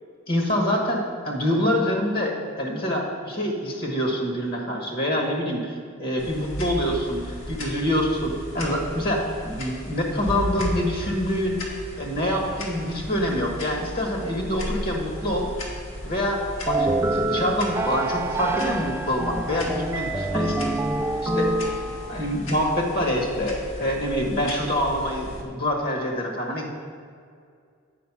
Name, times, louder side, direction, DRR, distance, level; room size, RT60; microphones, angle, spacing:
voice 1, 0.3-11.6 12.0-15.5 16.0-21.5 22.1-26.7, left 1 dB, 45° left, 0 dB, 1.3 m, -26 dB
sound 1, 6.2-25.4, equal, 65° left, 1.4 m, -36 dB
sound 2, 16.7-22.4, right 2 dB, 10° right, 0.3 m, -26 dB
8.4 x 5.2 x 5.9 m, 2.2 s
head